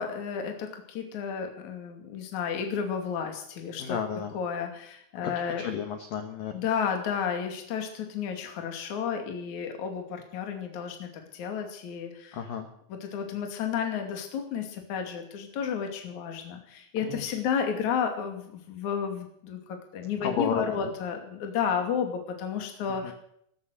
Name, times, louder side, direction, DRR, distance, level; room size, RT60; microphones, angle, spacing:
voice 1, 0.0-4.0 4.3-5.6 6.5-12.4 12.9-23.1, left 7 dB, 45° left, 4 dB, 3.1 m, -32 dB
voice 2, 3.8-4.3 5.6-6.6 12.3-12.7 17.0-17.2 20.2-20.6 23.0-23.1, left 7 dB, 80° left, 6 dB, 2.0 m, -32 dB
15.0 x 14.5 x 6.5 m, 0.69 s
omnidirectional pair, 6.0 m